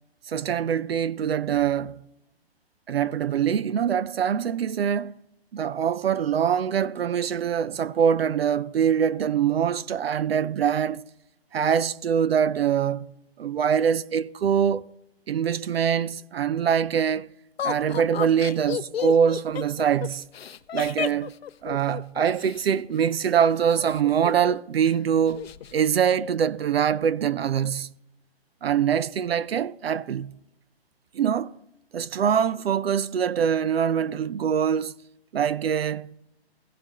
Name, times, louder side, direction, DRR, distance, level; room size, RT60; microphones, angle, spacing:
voice 1, 0.3-2.0 2.9-5.1 5.5-11.0 11.5-13.1 13.4-14.8 15.3-17.3 17.6-20.2 20.7-21.3 21.6-25.4 25.7-27.9 28.6-30.4 31.1-31.6 31.9-35.0 35.3-36.1, right 8 dB, 65° right, 0.5 m, -24 dB
Laughter, 17.6-22.7 23.7-24.6 24.9-25.0 25.3-25.7, left 9 dB, 70° left, 0.6 m, -32 dB
16.5 x 6.8 x 2.9 m
hypercardioid pair, 160°, 32 cm